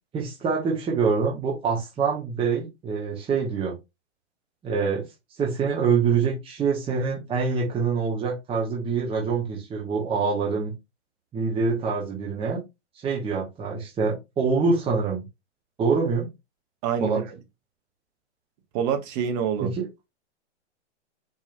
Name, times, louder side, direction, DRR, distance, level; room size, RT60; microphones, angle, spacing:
voice 1, 0.1-3.7 4.6-5.1 5.4-10.7 11.3-12.6 12.9-15.2 15.8-16.3 17.0-17.2 19.6-19.9, right 5 dB, 15° right, 1.1 m, -25 dB
voice 2, 16.8-17.2 18.7-19.7, right 8 dB, 35° right, 1.1 m, -26 dB
4.5 x 3.1 x 2.6 m
hypercardioid pair, 120°, 35 cm